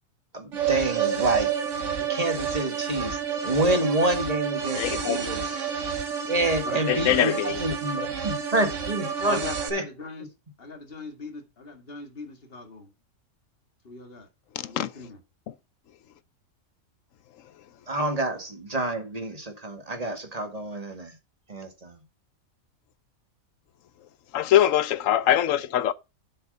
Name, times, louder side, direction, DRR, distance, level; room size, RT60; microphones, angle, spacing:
voice 1, 0.3-1.5 2.0-5.4 6.3-9.4 9.7-9.8 17.9-21.1 21.5-22.0, right 2 dB, 25° right, 1.9 m, -28 dB
sound 1, 0.5-9.7, right 7 dB, 55° right, 1.6 m, -29 dB
voice 2, 4.7-5.3 6.9-7.6 8.0-8.1 14.6-14.9 15.5-15.6 24.3-25.9, left 11 dB, 70° left, 1.0 m, -23 dB
voice 3, 9.3-10.3 10.6-12.9 13.8-14.3 14.6-15.2, left 3 dB, 40° left, 2.3 m, -39 dB
8.0 x 6.5 x 5.5 m
omnidirectional pair, 1.5 m